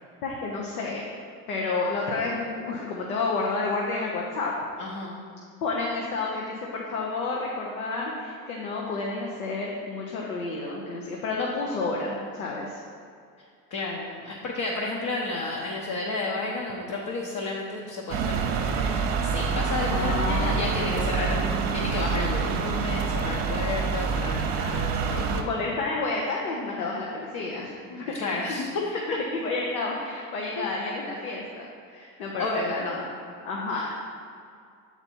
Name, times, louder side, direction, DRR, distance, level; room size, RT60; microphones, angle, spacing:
voice 1, 0.2-1.0 1.5-4.6 5.6-12.8 19.9-21.5 25.3-28.2 28.5-33.1 33.4-33.9, left 3 dB, 85° left, -2 dB, 0.9 m, -30 dB
voice 2, 4.8-5.2 13.7-21.4 21.7-25.5 27.8-28.8 30.6-30.7 32.4-33.0, left 2 dB, 45° left, -2 dB, 0.9 m, -32 dB
sound 1, 18.1-25.4, right 5 dB, 55° right, 0.8 m, -26 dB
6.9 x 4.3 x 4.3 m, 2.3 s
hypercardioid pair, 85°, 42 cm